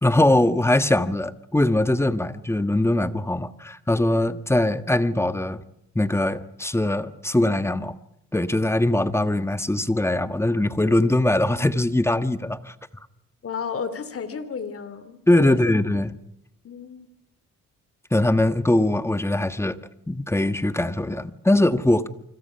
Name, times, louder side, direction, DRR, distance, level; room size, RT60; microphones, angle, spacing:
voice 1, 0.0-5.6 5.9-7.9 8.3-12.7 15.3-16.1 18.1-19.8 20.1-22.1, left 1 dB, 10° left, 1.5 m, -21 dB
voice 2, 13.4-15.2 15.4-15.6 16.6-17.1, left 6 dB, 50° left, 2.9 m, -32 dB
28.5 x 25.5 x 5.8 m
cardioid pair, 90°, 30 cm